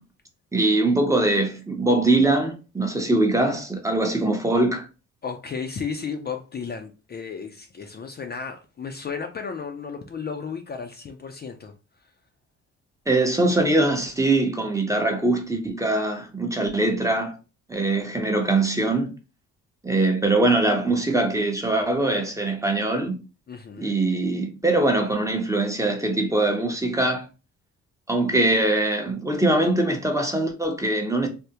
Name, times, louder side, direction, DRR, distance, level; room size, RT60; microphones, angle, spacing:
voice 1, 0.5-4.9 13.1-17.4 17.7-19.1 19.8-23.2 23.8-27.3 28.1-31.3, right 2 dB, 10° right, 0.7 m, -22 dB
voice 2, 5.2-11.7 23.5-24.0, left 5 dB, 35° left, 0.4 m, -34 dB
3.4 x 2.1 x 2.8 m
cardioid pair, 90°, 30 cm